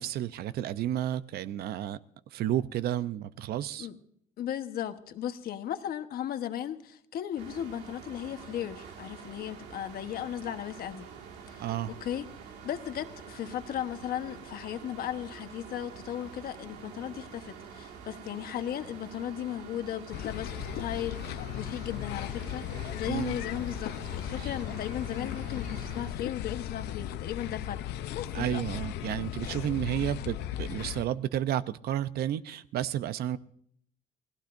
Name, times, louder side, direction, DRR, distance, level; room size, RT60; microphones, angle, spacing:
voice 1, 0.0-2.0 2.3-3.9 11.6-11.9 23.1-23.4 24.4-24.5 28.3-33.4, right 11 dB, 70° right, 14 dB, 0.7 m, -31 dB
voice 2, 4.4-11.1 11.5-11.7 12.0-12.3 12.6-22.6 22.9-27.8 28.1-28.8, left 10 dB, 65° left, 8 dB, 1.2 m, -36 dB
sound 1, 7.4-26.1, right 6 dB, 85° right, 2.1 m, -47 dB
sound 2, 20.1-31.1, left 11 dB, 80° left, 0.7 m, -37 dB
28.0 x 18.5 x 2.6 m, 0.65 s
cardioid pair, 110°, 17 cm